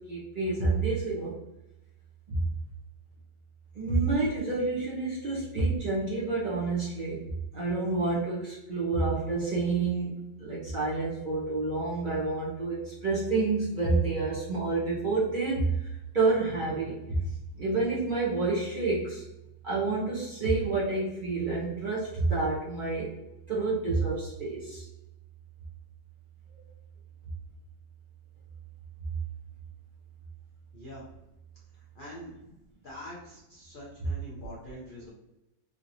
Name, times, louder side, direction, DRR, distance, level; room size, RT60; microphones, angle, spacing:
voice 1, 0.1-1.3 2.3-2.4 3.7-7.2 7.5-15.7 16.1-17.3 17.5-19.2 19.6-23.1 23.5-24.8, right 3 dB, 60° right, -7 dB, 0.5 m, -28 dB
voice 2, 30.7-31.1 31.9-32.4 32.8-35.1, equal, 65° left, -6 dB, 0.5 m, -44 dB
3.6 x 2.9 x 2.6 m, 0.92 s
omnidirectional pair, 2.0 m